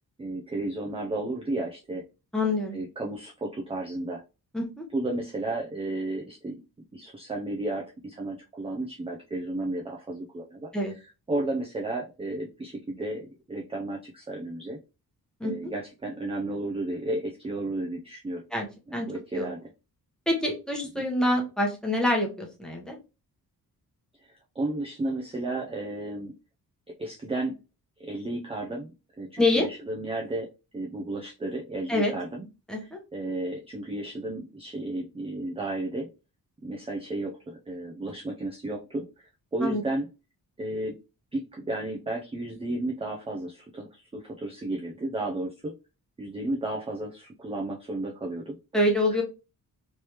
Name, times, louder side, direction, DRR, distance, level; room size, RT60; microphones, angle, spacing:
voice 1, 0.2-2.0 2.7-4.2 4.9-6.5 6.9-10.7 11.3-14.8 15.4-18.4 18.9-19.7 20.9-21.1 24.6-26.3 27.0-27.6 28.0-30.5 30.7-32.5 32.8-36.1 36.6-39.1 39.5-40.1 40.6-41.0 41.3-45.7 46.2-48.6, right 2 dB, 15° right, 0 dB, 0.4 m, -33 dB
voice 2, 2.3-2.8 4.5-4.8 10.7-10.9 15.4-15.7 18.5-18.7 18.9-19.1 19.3-19.5 20.3-22.9 29.4-29.7 31.9-32.1 32.7-33.0 39.6-39.8 48.7-49.2, left 1 dB, ahead, -1 dB, 0.9 m, -26 dB
3.3 x 3.1 x 2.9 m, 0.29 s
wide cardioid pair, 160°, 38 cm